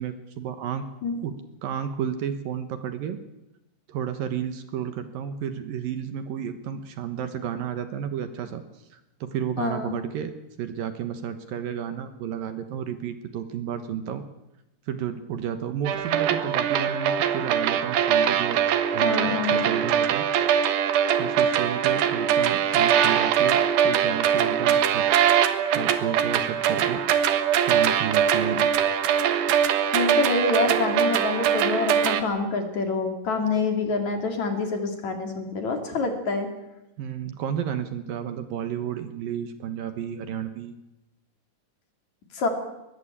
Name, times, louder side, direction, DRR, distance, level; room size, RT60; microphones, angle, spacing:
voice 1, 0.0-0.8 1.2-1.3 1.6-3.2 3.9-8.6 8.9-14.2 14.9-18.6 18.9-20.3 21.2-25.0 25.7-27.0 27.7-28.7 37.0-40.8, right 8 dB, 65° right, 9 dB, 2.8 m, -32 dB
voice 2, 9.6-10.0 19.0-19.7 29.9-36.5 42.3-42.5, left 3 dB, 50° left, 5 dB, 3.8 m, -26 dB
sound 1, 15.9-32.2, right 9 dB, 90° right, 3.5 m, -22 dB
21.5 x 21.0 x 8.8 m, 0.95 s
omnidirectional pair, 4.6 m